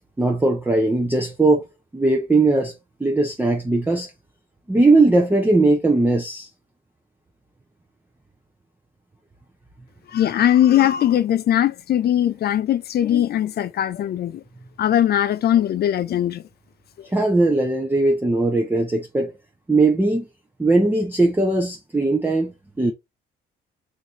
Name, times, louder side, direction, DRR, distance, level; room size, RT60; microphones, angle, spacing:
voice 1, 0.2-1.6 1.9-4.1 4.7-6.5 17.0-19.3 19.7-20.3 20.6-22.5 22.8-22.9, right 2 dB, 10° right, 0.6 m, -19 dB
voice 2, 10.1-14.4 14.8-16.4, left 11 dB, 55° left, 0.4 m, -20 dB
3.0 x 2.6 x 3.8 m
cardioid pair, 90°, 20 cm